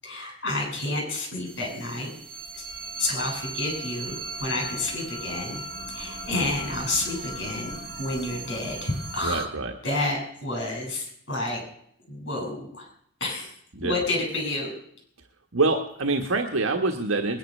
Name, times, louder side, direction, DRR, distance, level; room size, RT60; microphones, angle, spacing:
voice 1, 0.0-2.1 2.5-2.6 3.0-5.6 5.9-9.5 9.8-11.6 12.1-12.9 13.2-13.5 13.8-14.7, left 2 dB, 65° left, 1 dB, 7.3 m, -30 dB
sound 1, 1.5-9.5, right 3 dB, 45° right, 1.9 m, -37 dB
voice 2, 9.2-9.7 13.7-14.0 15.5-17.4, right 3 dB, 90° right, 4 dB, 1.4 m, -25 dB
20.5 x 10.5 x 6.6 m, 0.67 s
head